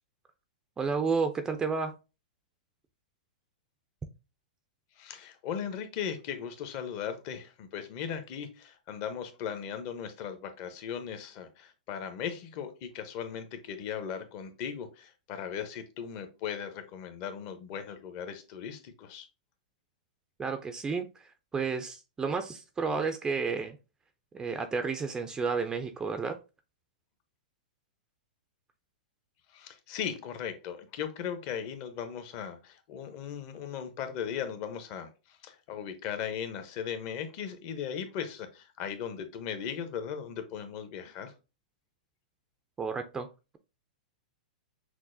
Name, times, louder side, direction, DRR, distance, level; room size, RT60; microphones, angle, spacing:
voice 1, 0.8-2.0 20.4-23.8 24.3-26.4 42.8-43.3, right 5 dB, 15° right, 0.3 m, -31 dB
voice 2, 5.0-19.3 29.5-41.3, left 8 dB, 45° left, 0.7 m, -38 dB
5.9 x 2.1 x 2.6 m
hypercardioid pair, 125°, 5 cm